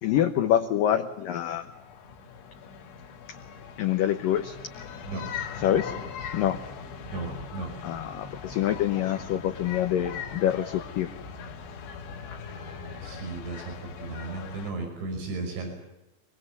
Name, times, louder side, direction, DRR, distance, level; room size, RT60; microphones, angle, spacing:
voice 1, 0.0-1.7 3.8-4.6 5.6-5.9 6.3-6.6 7.8-11.1, left 11 dB, 70° left, 6 dB, 2.2 m, -26 dB
sound 1, 1.0-14.7, left 6 dB, 90° left, 4.8 m, -40 dB
voice 2, 7.0-7.7 13.0-15.7, right 3 dB, 80° right, 4 dB, 8.0 m, -35 dB
23.5 x 23.0 x 8.2 m, 0.92 s
omnidirectional pair, 5.3 m